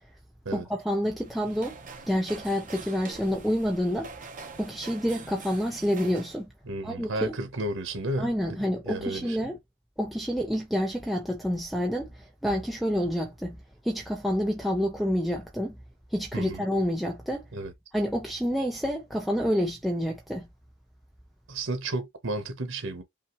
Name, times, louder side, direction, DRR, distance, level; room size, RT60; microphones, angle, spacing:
voice 1, 0.5-1.8 2.1-4.1 4.6-6.5 6.8-7.3 8.2-9.6 10.0-13.6 13.8-15.8 16.1-17.5 17.9-20.5, equal, ahead, 0.8 m, -28 dB
sound 1, 1.1-6.4, right 4 dB, 40° right, 1.0 m, -45 dB
voice 2, 6.7-8.3 8.8-9.4 16.3-16.6 17.5-17.7 21.5-23.0, right 2 dB, 85° right, 1.0 m, -32 dB
5.6 x 2.5 x 3.0 m
head